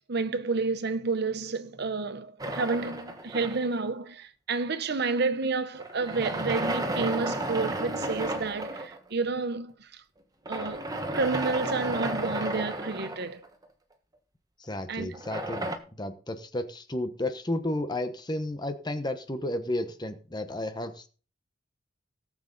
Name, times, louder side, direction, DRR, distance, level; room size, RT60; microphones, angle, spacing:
voice 1, 0.1-9.7 10.5-10.9 11.1-13.4 14.9-15.1, right 4 dB, 60° right, 0.9 m, -30 dB
sound 1, 2.4-3.9 5.8-9.0 10.5-13.6 15.1-15.8, right 1 dB, 20° right, 1.4 m, -33 dB
voice 2, 14.6-15.7 16.0-21.1, left 1 dB, 20° left, 1.1 m, -32 dB
17.5 x 7.6 x 4.1 m
head